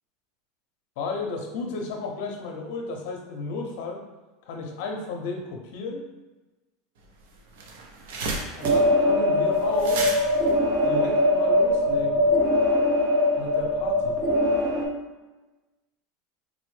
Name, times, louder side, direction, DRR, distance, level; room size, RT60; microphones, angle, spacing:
voice 1, 1.0-4.0 4.5-6.0 8.6-10.1 10.8-12.3 13.4-14.2, left 3 dB, 65° left, 2 dB, 0.6 m, -33 dB
sound 1, 7.0-7.1 7.4-11.6, right 3 dB, 85° right, 0.5 m, -34 dB
sound 2, 8.6-14.9, left 1 dB, 35° right, 0.6 m, -22 dB
3.9 x 2.0 x 3.1 m, 1.1 s
supercardioid pair, 145°, 0 cm